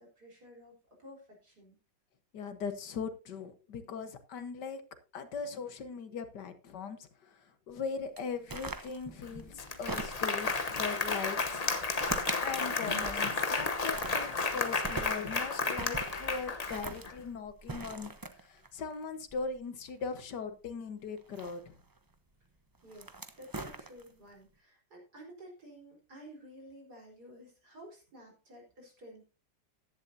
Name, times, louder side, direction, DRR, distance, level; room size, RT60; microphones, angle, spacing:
voice 1, 0.0-1.8 22.8-29.2, equal, 60° right, -1 dB, 4.7 m, -53 dB
voice 2, 2.3-4.8 5.1-7.4 7.7-11.7 12.2-18.1 18.4-21.7, left 5 dB, 70° left, 10 dB, 1.8 m, -40 dB
sound 1, 8.2-10.5 11.4-12.5 12.8-13.6 13.9-20.1 21.2-22.0 22.7-24.3, right 2 dB, 25° right, 0.4 m, -42 dB
Applause, 9.2-9.3 9.6-17.1, left 3 dB, 30° left, 0.8 m, -32 dB
15.0 x 11.5 x 2.7 m, 0.31 s
omnidirectional pair, 2.0 m